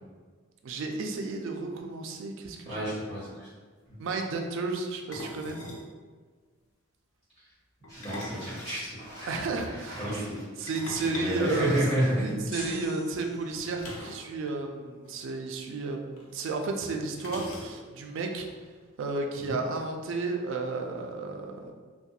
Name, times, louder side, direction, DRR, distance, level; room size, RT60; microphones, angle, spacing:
voice 1, 0.6-2.9 4.0-5.6 9.3-10.0 10.6-11.8 12.2-18.5 19.0-21.7, right 3 dB, 65° right, 3 dB, 0.3 m, -32 dB
voice 2, 2.6-3.5 3.9-4.0 8.0-9.3 9.9-10.4 11.1-12.5 19.3-19.5, right 1 dB, 40° left, -14 dB, 1.5 m, -31 dB
sound 1, 2.8-2.9 3.1-3.3 5.1-5.9 7.8-9.3 10.7-12.3 13.8-14.3 14.6-14.7 15.0-15.2 16.2-16.3 17.2-18.0, left 1 dB, 90° left, 0.5 m, -41 dB
sound 2, 7.9-12.9, equal, 15° left, 0.7 m, -48 dB
sound 3, 12.5-13.8, equal, 70° left, 1.0 m, -44 dB
2.3 x 2.2 x 2.7 m, 1.5 s
head